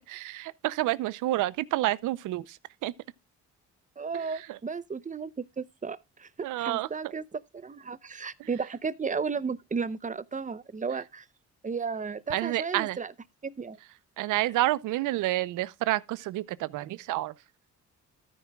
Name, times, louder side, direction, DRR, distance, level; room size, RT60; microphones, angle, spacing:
voice 1, 0.1-2.9 4.1-4.6 6.4-7.1 8.4-8.5 12.3-13.0 14.2-17.3, right 16 dB, 90° right, 0.7 m, -29 dB
voice 2, 4.0-11.3 11.6-13.1 13.4-13.8, right 5 dB, 25° right, 0.8 m, -34 dB
13.5 x 9.6 x 2.3 m
cardioid pair, 90°, 30 cm